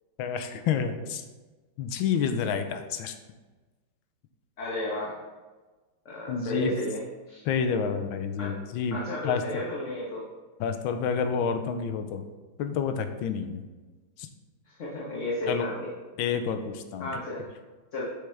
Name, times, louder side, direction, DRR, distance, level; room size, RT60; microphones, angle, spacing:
voice 1, 0.2-1.2 1.8-3.2 6.3-6.8 7.4-9.0 9.2-9.4 10.6-12.3 12.6-13.6 14.2-14.3 15.5-15.7 16.2-17.1, left 6 dB, 75° left, 7 dB, 1.4 m, -29 dB
voice 2, 4.6-5.2 6.0-7.0 7.3-7.4 8.4-8.5 8.9-10.2 14.6-15.9 17.0-17.4 17.9-18.1, left 1 dB, 45° left, -5 dB, 1.3 m, -33 dB
7.0 x 6.7 x 3.3 m, 1.3 s
omnidirectional pair, 2.3 m